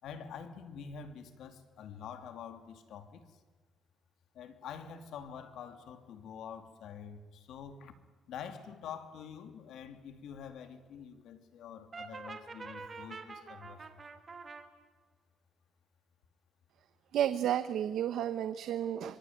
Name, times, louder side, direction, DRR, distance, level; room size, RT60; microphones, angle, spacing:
voice 1, 0.0-3.4 4.3-7.9 8.3-13.9, left 7 dB, 75° left, 2.7 m, -46 dB
Brass instrument, 11.9-14.6, right 4 dB, 25° right, 2.6 m, -46 dB
voice 2, 17.1-19.2, right 10 dB, 70° right, 1.0 m, -32 dB
25.0 x 24.5 x 9.4 m
cardioid pair, 150°, 0 cm